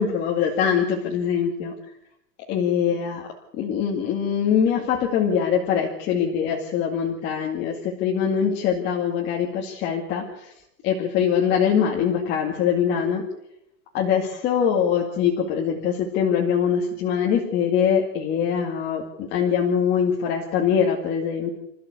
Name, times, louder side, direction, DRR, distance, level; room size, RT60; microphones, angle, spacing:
voice 1, 0.0-1.7 2.5-3.3 3.5-10.5 10.8-13.2 13.9-21.6, left 7 dB, 20° left, -1 dB, 2.2 m, -23 dB
26.5 x 14.5 x 8.3 m, 0.79 s
supercardioid pair, 175°, 49 cm